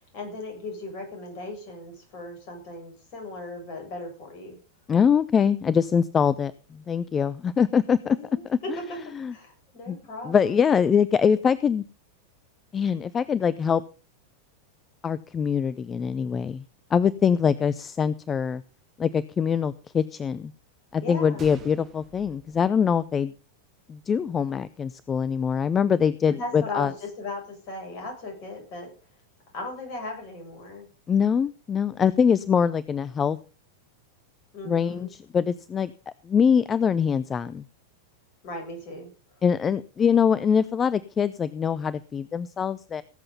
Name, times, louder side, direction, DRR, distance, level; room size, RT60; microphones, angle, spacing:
voice 1, 0.1-4.6 8.1-8.4 9.3-10.6 21.0-21.5 26.3-28.9 29.5-30.9 34.5-35.1 38.4-39.1, left 2 dB, 45° left, 2 dB, 7.4 m, -37 dB
voice 2, 4.9-8.2 8.5-8.6 9.1-9.3 9.9-10.0 10.2-11.8 12.7-13.8 15.0-16.6 16.9-18.6 19.0-20.5 20.9-23.3 23.9-26.9 31.1-33.4 34.7-35.9 36.2-37.6 39.4-43.0, left 7 dB, 20° left, 17 dB, 0.5 m, -23 dB
Gunshot gunfire, 21.4-23.4 23.7-23.8 24.5-24.7, right 7 dB, 30° right, 2.2 m, -48 dB
18.0 x 7.8 x 5.4 m, 0.35 s
figure-of-eight pair, 90°, 0 cm